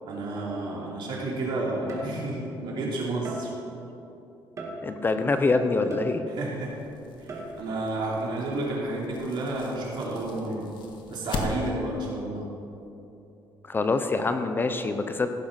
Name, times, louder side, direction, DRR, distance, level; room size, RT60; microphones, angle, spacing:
voice 1, 0.0-3.5 6.3-6.7 7.2-10.7 11.1-12.5, right 2 dB, 65° right, -3 dB, 3.3 m, -31 dB
sound 1, 0.8-0.9 1.9-2.5 3.2-3.8 4.6-5.2 5.9-6.6 7.3-7.8, right 2 dB, 40° right, 2.1 m, -38 dB
voice 2, 4.8-6.2 13.7-15.3, left 3 dB, 25° left, 8 dB, 0.7 m, -25 dB
sound 2, 6.4-12.0, left 3 dB, 70° left, 1.5 m, -39 dB
16.0 x 7.2 x 5.5 m, 2.8 s
cardioid pair, 125°, 8 cm